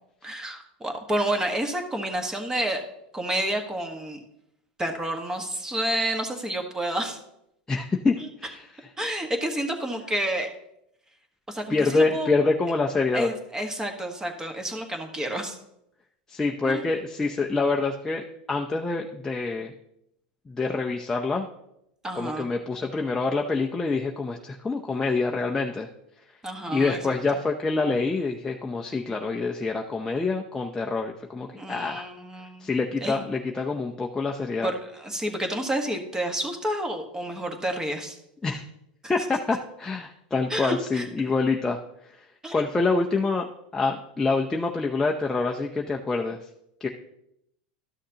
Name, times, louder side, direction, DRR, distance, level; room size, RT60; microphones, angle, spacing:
voice 1, 0.2-2.8 3.1-4.2 4.8-7.2 8.2-8.3 9.0-10.5 11.5-12.3 13.1-15.6 16.6-16.9 22.0-22.5 26.4-27.2 31.5-32.7 33.0-33.2 34.6-38.2 40.5-41.1 42.4-42.6, right 1 dB, 10° right, 5 dB, 1.3 m, -29 dB
voice 2, 7.7-8.6 11.7-13.3 16.3-19.7 20.5-21.5 22.1-25.9 26.7-32.1 32.6-34.7 38.4-38.6 39.1-42.3 42.5-43.4 43.7-46.4 46.8-46.9, left 3 dB, 10° left, 0 dB, 0.6 m, -26 dB
12.5 x 6.4 x 2.8 m, 0.80 s
supercardioid pair, 115°, 5 cm